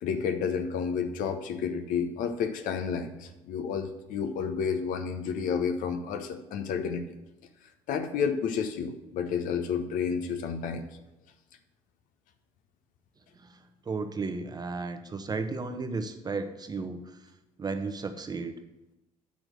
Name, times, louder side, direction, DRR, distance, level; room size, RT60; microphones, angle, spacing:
voice 1, 0.0-7.0 7.9-10.9, left 6 dB, 55° left, 7 dB, 0.9 m, -30 dB
voice 2, 13.8-17.2 17.6-18.5, right 4 dB, 25° right, 8 dB, 1.0 m, -34 dB
8.3 x 6.0 x 6.5 m, 0.97 s
figure-of-eight pair, 50°, 17 cm